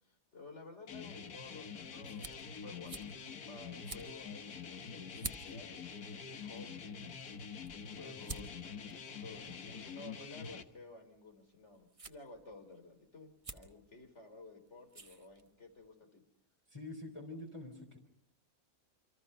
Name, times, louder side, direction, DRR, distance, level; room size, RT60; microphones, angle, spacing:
voice 1, 0.0-16.2, left 3 dB, 50° left, 6 dB, 4.0 m, -54 dB
sound 1, 0.9-10.6, left 6 dB, 80° left, 1.9 m, -46 dB
sound 2, 2.0-15.9, right 3 dB, 25° right, 1.3 m, -53 dB
voice 2, 16.7-18.0, left 2 dB, 20° left, 0 dB, 3.5 m, -46 dB
28.5 x 26.0 x 5.6 m, 0.74 s
omnidirectional pair, 1.5 m